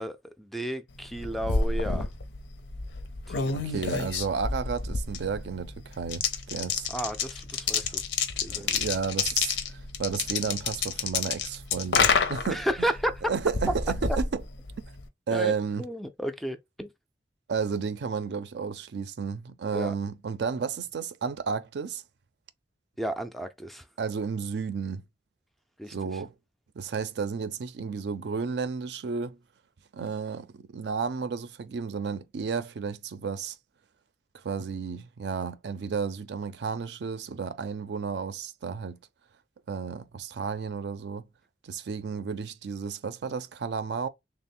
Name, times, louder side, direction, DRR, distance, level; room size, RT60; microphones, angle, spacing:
voice 1, 0.0-2.1 3.3-3.7 6.9-8.0 8.4-8.8 12.5-13.3 15.3-15.5 15.8-16.9 19.7-20.0 23.0-23.9 25.8-26.2, equal, ahead, 0.3 m, -33 dB
sound 1, 1.0-15.1, left 5 dB, 85° left, 0.6 m, -30 dB
voice 2, 3.5-6.9 8.5-12.9 13.3-14.4 15.3-15.8 17.5-22.0 24.0-25.0 25.9-26.3 26.8-29.4 29.9-33.6 34.4-39.0 39.7-41.3 41.6-44.1, right 5 dB, 65° right, 0.4 m, -32 dB
3.3 x 2.1 x 4.1 m
head